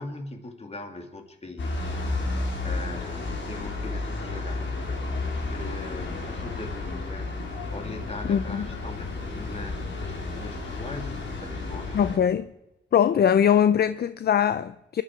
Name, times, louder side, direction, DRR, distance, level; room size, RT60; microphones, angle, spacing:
voice 1, 0.0-12.1, left 2 dB, 35° left, 2.4 m, -41 dB
sound 1, 1.6-12.2, left 3 dB, 75° left, 3.2 m, -32 dB
voice 2, 8.3-8.7 11.9-12.5 12.9-15.0, left 8 dB, 55° left, 0.5 m, -21 dB
25.5 x 11.5 x 4.7 m
wide cardioid pair, 110°, 19 cm